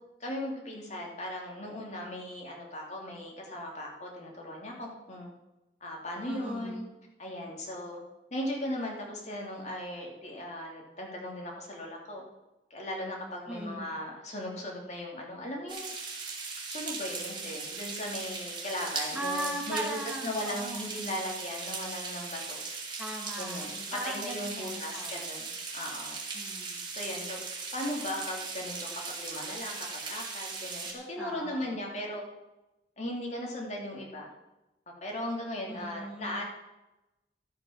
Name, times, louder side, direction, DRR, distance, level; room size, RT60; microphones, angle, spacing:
voice 1, 0.2-5.3 5.8-6.8 7.2-8.0 8.3-12.2 12.7-15.9 16.7-20.0 20.2-22.6 23.4-23.7 24.0-26.2 26.9-28.9 29.2-32.2 33.0-34.3 35.0-36.4, left 1 dB, 40° left, -1 dB, 2.7 m, -37 dB
voice 2, 6.2-6.9 13.5-13.9 19.1-20.9 23.0-25.3 26.3-26.9 31.2-31.9 35.7-36.4, right 1 dB, 5° right, -1 dB, 1.6 m, -39 dB
sound 1, 15.7-30.9, right 4 dB, 30° right, 2.4 m, -38 dB
12.5 x 8.3 x 5.9 m, 0.99 s
head